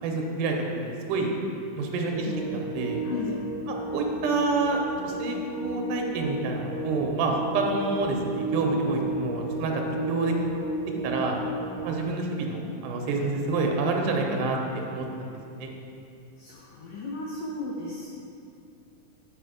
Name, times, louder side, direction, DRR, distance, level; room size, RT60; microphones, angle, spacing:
voice 1, 0.0-1.3 1.8-3.0 3.7-5.4 5.6-10.3 11.0-11.4 11.8-15.3 15.6-15.7, right 3 dB, 85° right, 1 dB, 2.4 m, -28 dB
sound 1, 2.1-12.0, right 1 dB, 55° right, 1.7 m, -33 dB
voice 2, 3.1-3.4 16.4-18.1, left 2 dB, 70° left, -4 dB, 2.0 m, -35 dB
8.8 x 4.8 x 5.1 m, 2.5 s
omnidirectional pair, 3.7 m